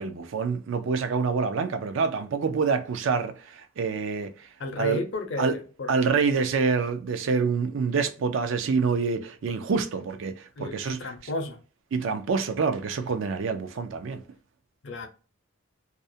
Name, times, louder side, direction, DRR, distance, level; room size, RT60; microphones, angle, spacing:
voice 1, 0.0-5.0 5.4-5.6 5.9-11.3 11.9-14.2, right 5 dB, 65° right, 0.4 m, -27 dB
voice 2, 4.6-5.9 10.6-11.6 14.8-15.1, left 2 dB, 60° left, 0.5 m, -33 dB
2.4 x 2.0 x 2.6 m
head